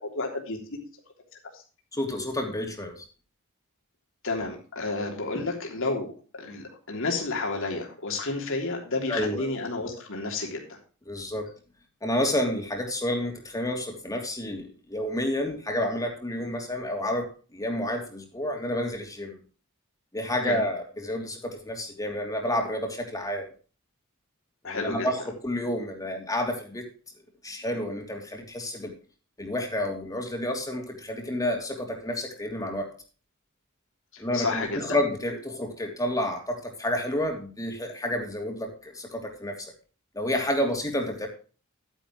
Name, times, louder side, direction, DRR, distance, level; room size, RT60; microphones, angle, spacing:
voice 1, 0.0-0.6 1.5-1.6 4.2-10.8 20.4-20.6 24.6-25.3 34.1-34.8, left 3 dB, 65° left, 1 dB, 3.3 m, -31 dB
voice 2, 1.9-3.0 9.1-9.5 11.1-11.5 12.0-19.4 20.1-23.5 24.6-26.8 27.4-28.9 29.4-32.9 34.2-39.7 40.1-41.3, left 1 dB, 15° left, 2 dB, 2.9 m, -30 dB
11.0 x 10.0 x 3.0 m, 0.37 s
head